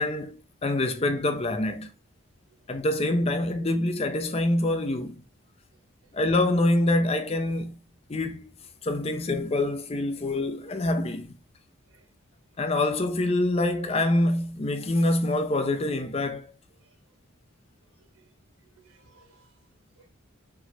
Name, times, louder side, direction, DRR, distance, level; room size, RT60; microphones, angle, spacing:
voice 1, 0.0-1.9 2.7-5.2 6.1-7.7 8.1-8.5 8.8-11.4 12.6-16.5, left 1 dB, 30° left, 0.4 m, -25 dB
voice 2, 18.0-18.3 18.6-19.5 20.0-20.1, right 4 dB, 85° right, 1.5 m, -60 dB
4.4 x 2.1 x 4.1 m
head